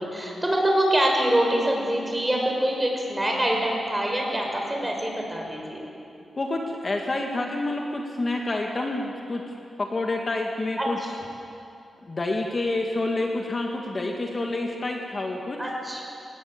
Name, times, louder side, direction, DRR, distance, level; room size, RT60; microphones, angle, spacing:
voice 1, 0.0-5.9 10.8-10.9 15.6-16.0, right 1 dB, 10° right, 0 dB, 6.0 m, -25 dB
voice 2, 6.4-11.0 12.1-15.6, left 2 dB, 35° left, 1 dB, 2.0 m, -28 dB
22.5 x 19.0 x 8.8 m, 2.6 s
wide cardioid pair, 100°, 0 cm